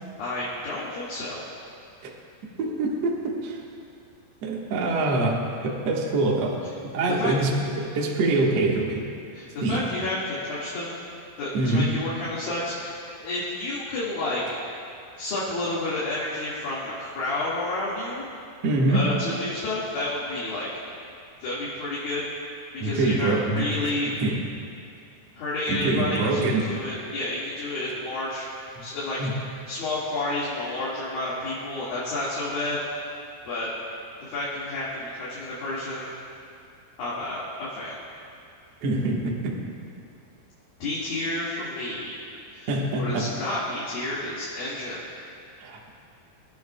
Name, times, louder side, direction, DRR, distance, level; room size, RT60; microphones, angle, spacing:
voice 1, 0.2-1.4 7.1-7.3 9.3-11.0 11.4-14.6 15.2-18.3 18.9-20.7 21.4-22.3 22.7-24.1 25.3-29.2 29.7-33.1 33.5-33.7 34.2-36.1 37.0-38.0 40.8-42.2 42.5-42.7 43.0-45.1, left 2 dB, 60° left, -9 dB, 3.6 m, -30 dB
voice 2, 2.6-3.6 4.4-6.5 6.9-9.0 9.6-9.8 11.5-11.9 18.6-19.0 22.8-23.6 24.2-24.4 25.7-26.7 28.8-28.9 29.2-29.3 38.8-39.5 42.7-43.2 45.6-45.8, right 2 dB, 55° right, -2 dB, 2.0 m, -24 dB
26.0 x 13.0 x 2.3 m, 2.5 s
omnidirectional pair, 4.8 m